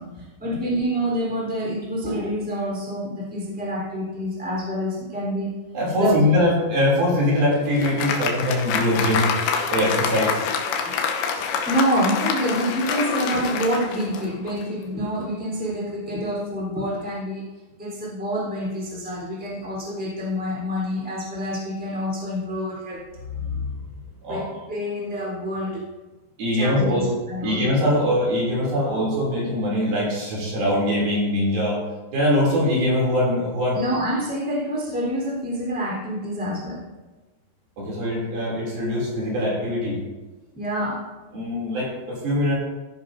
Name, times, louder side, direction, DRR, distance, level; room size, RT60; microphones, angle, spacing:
voice 1, 0.0-5.5 5.9-6.2 10.8-10.9 11.6-17.5 17.8-23.0 24.3-25.8 26.5-27.6 33.7-36.9 40.5-41.0, equal, ahead, -4 dB, 3.3 m, -27 dB
voice 2, 5.7-9.3 9.7-10.4 23.4-23.7 24.2-24.4 26.4-27.1 27.4-31.8 32.1-33.8 37.8-40.0 41.3-42.5, left 1 dB, 55° right, -5 dB, 4.8 m, -22 dB
Applause, 7.2-14.7, left 6 dB, 80° left, 3.2 m, -27 dB
16.5 x 10.5 x 2.8 m, 1.2 s
omnidirectional pair, 5.3 m